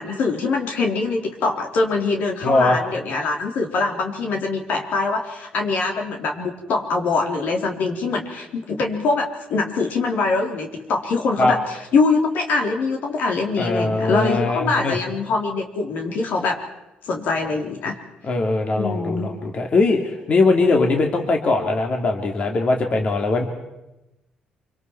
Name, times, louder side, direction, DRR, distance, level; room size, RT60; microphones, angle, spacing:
voice 1, 0.0-16.6 17.0-18.0 18.7-19.3, left 3 dB, 75° left, 2 dB, 3.5 m, -23 dB
voice 2, 2.4-2.8 11.4-11.5 13.6-15.0 18.3-23.5, left 3 dB, 45° left, 3 dB, 2.5 m, -20 dB
26.5 x 25.0 x 4.6 m, 0.95 s
cardioid pair, 105°, 3 cm